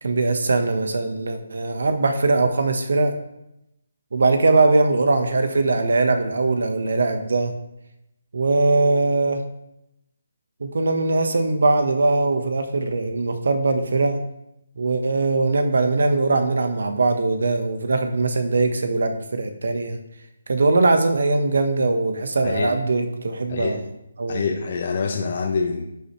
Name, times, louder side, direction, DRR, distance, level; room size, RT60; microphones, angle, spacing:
voice 1, 0.0-3.1 4.1-7.5 8.3-9.5 10.6-14.2 14.8-20.0 20.5-23.8 24.2-24.4, right 3 dB, 70° right, 7 dB, 1.4 m, -21 dB
voice 2, 24.3-25.8, left 4 dB, 50° left, 1 dB, 1.2 m, -25 dB
10.5 x 7.0 x 3.3 m, 0.85 s
hypercardioid pair, 155°, 0 cm